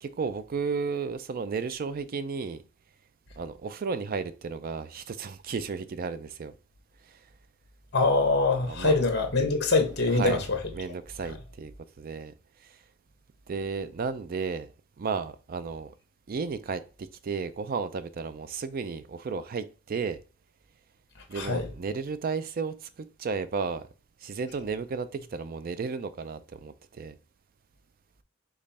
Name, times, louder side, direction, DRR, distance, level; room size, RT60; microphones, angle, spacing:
voice 1, 0.0-2.6 3.4-6.5 7.0-7.2 8.7-9.0 10.1-10.4 10.7-11.7 12.0-12.3 12.6-12.8 13.5-14.7 15.0-15.9 16.3-20.2 21.3-23.9 24.2-27.2, right 5 dB, 45° right, 0.4 m, -33 dB
voice 2, 7.9-10.6 21.3-21.7, left 3 dB, 55° left, 1.1 m, -24 dB
5.2 x 2.4 x 4.1 m
head